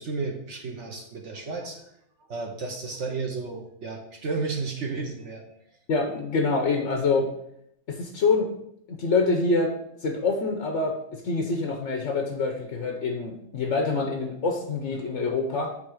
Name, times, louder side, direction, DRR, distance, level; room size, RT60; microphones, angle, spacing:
voice 1, 0.0-1.9 2.3-5.4, right 4 dB, 55° right, 2 dB, 0.8 m, -32 dB
voice 2, 5.9-7.3 7.9-8.5 8.9-9.7 10.0-15.7, left 3 dB, 55° left, 2 dB, 0.8 m, -26 dB
8.5 x 3.3 x 4.9 m, 0.73 s
omnidirectional pair, 2.2 m